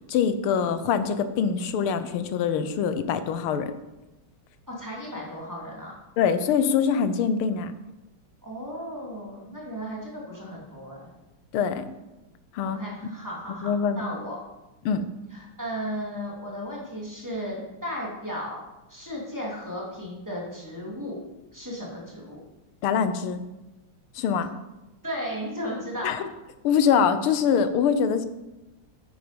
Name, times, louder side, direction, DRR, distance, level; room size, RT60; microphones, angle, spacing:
voice 1, 0.1-3.7 6.2-7.7 11.5-11.9 12.5-12.8 13.6-14.0 14.9-15.0 22.8-23.5 24.2-24.5 26.0-26.3 26.6-28.3, left 7 dB, 90° left, 11 dB, 1.7 m, -24 dB
voice 2, 4.7-5.9 8.4-11.1 12.7-14.4 14.8-15.0 15.3-18.6 18.9-21.2 21.5-22.4 25.0-26.2, equal, 10° right, -5 dB, 2.8 m, -35 dB
9.2 x 8.9 x 5.2 m, 1.0 s
omnidirectional pair, 2.3 m